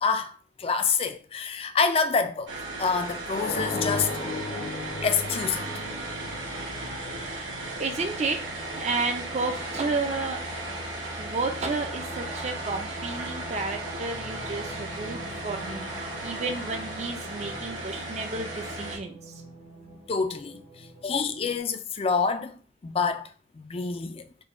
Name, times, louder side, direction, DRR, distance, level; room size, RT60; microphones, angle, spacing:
voice 1, 0.0-2.5 2.8-4.2 5.0-5.8 20.1-24.3, left 5 dB, 30° left, 0.3 m, -27 dB
sound 1, 2.5-19.0, right 2 dB, 85° right, 1.1 m, -36 dB
sound 2, 3.3-8.0, left 2 dB, 55° left, 0.7 m, -35 dB
voice 2, 7.2-8.4 8.8-10.4 11.2-19.2, right 3 dB, 35° right, 0.4 m, -32 dB
sound 3, 13.5-21.6, right 1 dB, 60° right, 1.1 m, -46 dB
3.8 x 2.2 x 3.6 m
head